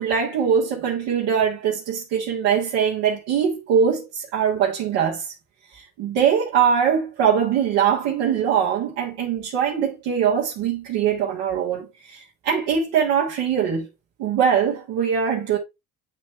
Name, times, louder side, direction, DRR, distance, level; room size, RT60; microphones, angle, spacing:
voice 1, 0.0-5.3 5.7-13.9 14.2-15.6, right 7 dB, 75° right, 1.5 m, -22 dB
9.2 x 3.2 x 3.1 m
hypercardioid pair, 60°, 41 cm